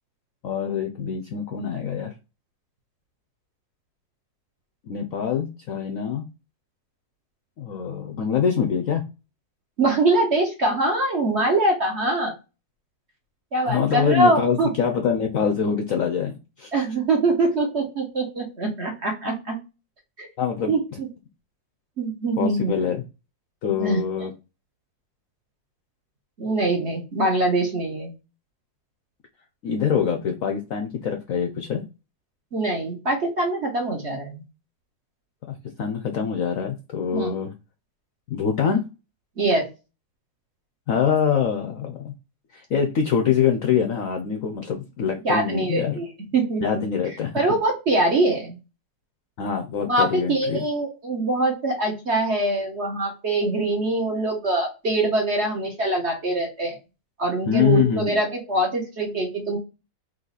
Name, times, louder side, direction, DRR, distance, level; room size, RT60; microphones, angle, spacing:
voice 1, 0.4-2.1 4.8-6.3 7.6-9.0 13.6-16.8 20.4-21.0 22.4-23.0 23.6-24.3 29.6-31.8 35.5-37.5 38.3-38.9 40.9-42.1 42.5-46.0 46.6-47.4 49.4-50.6 57.5-58.2, left 7 dB, 65° left, 4 dB, 0.8 m, -24 dB
voice 2, 9.8-12.3 13.5-14.7 16.7-19.6 20.2-20.3 20.7-21.1 22.0-22.7 23.8-24.0 26.4-28.1 32.5-34.4 37.1-37.3 39.4-39.7 45.2-46.1 46.3-46.8 47.3-48.6 49.9-56.8 57.2-59.6, right 2 dB, 45° right, 1 dB, 1.1 m, -23 dB
3.9 x 2.9 x 4.0 m, 0.28 s
omnidirectional pair, 2.0 m